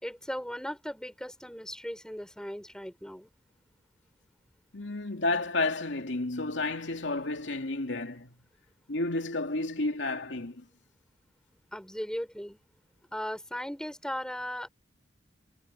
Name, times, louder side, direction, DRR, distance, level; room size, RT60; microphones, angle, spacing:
voice 1, 0.0-3.3 11.7-12.6 13.1-14.7, equal, 5° left, 5.9 m, -37 dB
voice 2, 4.7-8.3 8.9-10.6, left 2 dB, 85° left, 2.7 m, -31 dB
head